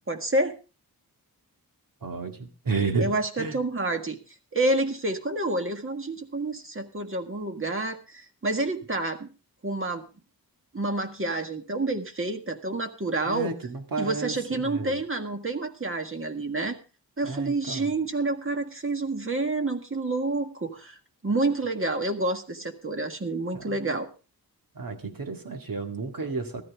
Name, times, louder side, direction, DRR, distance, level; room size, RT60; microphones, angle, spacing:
voice 1, 0.1-0.5 3.0-4.2 4.5-9.3 9.6-10.0 10.7-13.5 14.0-16.8 17.2-21.0 21.2-24.1, right 2 dB, 35° right, 5 dB, 1.8 m, -28 dB
voice 2, 2.0-3.1 3.4-3.6 13.3-15.0 17.2-17.9 23.5-23.8 24.8-26.6, right 4 dB, 65° right, 5 dB, 2.1 m, -31 dB
14.0 x 13.5 x 3.6 m, 0.33 s
wide cardioid pair, 85°, 37 cm